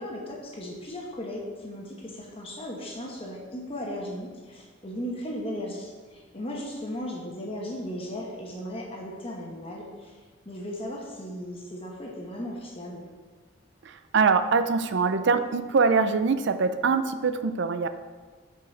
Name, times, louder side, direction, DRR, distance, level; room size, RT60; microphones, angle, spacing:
voice 1, 0.0-10.2 10.4-13.0, equal, 30° left, -1 dB, 1.0 m, -36 dB
voice 2, 13.8-17.9, right 5 dB, 65° right, 11 dB, 0.5 m, -23 dB
5.8 x 4.9 x 6.3 m, 1.4 s
head